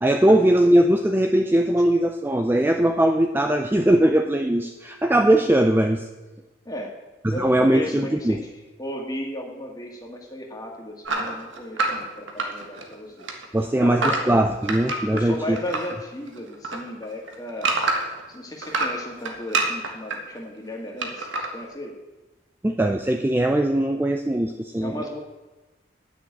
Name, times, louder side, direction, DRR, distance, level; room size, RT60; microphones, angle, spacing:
voice 1, 0.0-6.1 7.2-8.4 13.5-15.6 22.6-25.0, right 1 dB, 10° right, 5 dB, 0.4 m, -20 dB
voice 2, 6.7-7.0 7.3-8.5 8.8-13.3 13.7-14.2 15.1-17.7 18.3-22.0 24.8-25.2, left 1 dB, 20° left, 0 dB, 1.8 m, -34 dB
sound 1, 11.0-12.9 13.2-15.9 16.3-18.2 18.6-20.2 21.0-21.5, right 3 dB, 85° right, 1.6 m, -26 dB
9.9 x 6.4 x 8.7 m, 1.1 s
head